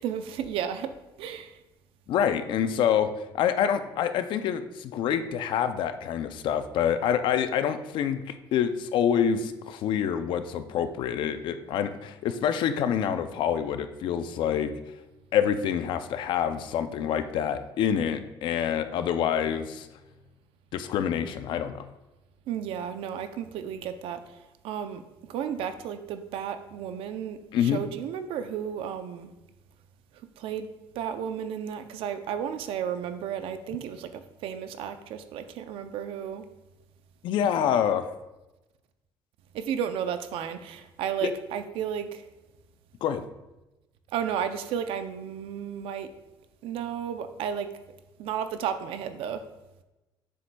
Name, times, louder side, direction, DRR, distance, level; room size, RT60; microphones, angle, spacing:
voice 1, 0.0-1.6 22.5-29.3 30.1-30.7 30.9-36.5 39.5-42.3 44.1-46.1 46.6-47.7 48.2-49.4, right 8 dB, 75° right, 10 dB, 0.5 m, -33 dB
voice 2, 2.1-14.7 15.3-19.9 20.7-21.9 27.5-27.8 37.2-38.1 41.2-41.3 43.0-43.2, left 8 dB, 60° left, 10 dB, 0.4 m, -27 dB
7.4 x 6.7 x 2.2 m, 1.0 s
cardioid pair, 170°, 9 cm